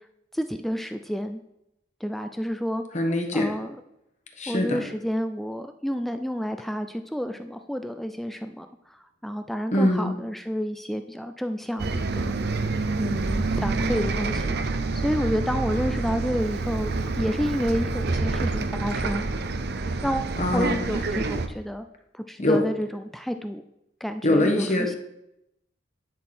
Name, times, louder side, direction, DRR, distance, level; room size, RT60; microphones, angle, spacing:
voice 1, 0.3-1.4 2.0-2.8 3.3-3.8 4.5-12.6 13.0-19.2 19.7-21.9 22.1-23.6 24.0-25.0, equal, ahead, 8 dB, 0.3 m, -30 dB
voice 2, 2.9-3.5 4.4-4.8 9.7-10.1 20.4-20.8 22.4-22.6 24.2-25.0, left 1 dB, 40° left, 3 dB, 1.3 m, -23 dB
Bus, 11.8-21.5, right 3 dB, 60° right, 0.7 m, -27 dB
sound 1, 15.6-16.5, right 2 dB, 25° right, 1.0 m, -46 dB
10.5 x 6.3 x 4.3 m, 0.84 s
head